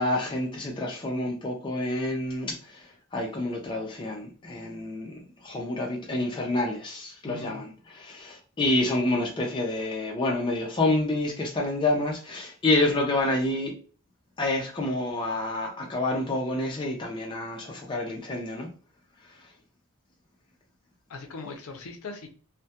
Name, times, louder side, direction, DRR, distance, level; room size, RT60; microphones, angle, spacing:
voice 1, 0.0-2.8 3.1-5.2 5.4-13.7 14.4-18.7, left 2 dB, 20° left, 0.4 m, -28 dB
voice 2, 7.3-7.7 21.1-22.3, left 3 dB, 75° left, 0.5 m, -40 dB
2.2 x 2.1 x 2.7 m
head